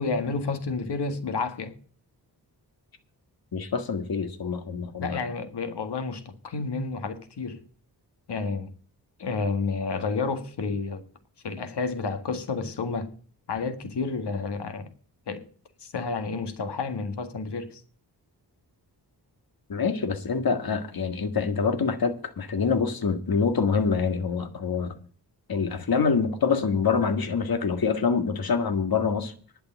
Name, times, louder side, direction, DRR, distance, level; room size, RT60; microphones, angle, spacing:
voice 1, 0.0-1.8 5.0-7.6 8.3-8.7 9.2-11.1 11.4-13.1 13.5-14.9 15.3-15.4 15.8-17.8, left 4 dB, 85° left, 1.9 m, -30 dB
voice 2, 3.5-5.2 19.7-24.9 25.5-29.3, left 5 dB, 60° left, 1.8 m, -25 dB
11.0 x 6.8 x 8.9 m
wide cardioid pair, 75°, 40 cm